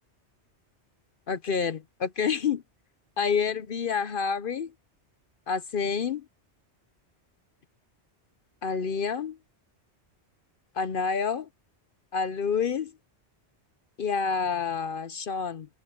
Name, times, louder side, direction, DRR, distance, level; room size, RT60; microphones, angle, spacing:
voice 1, 1.3-2.6 3.2-4.7 5.5-6.2 8.6-9.4 10.8-11.5 12.1-12.9 14.0-15.7, left 6 dB, 55° left, 0.8 m, -28 dB
omnidirectional pair, 1.2 m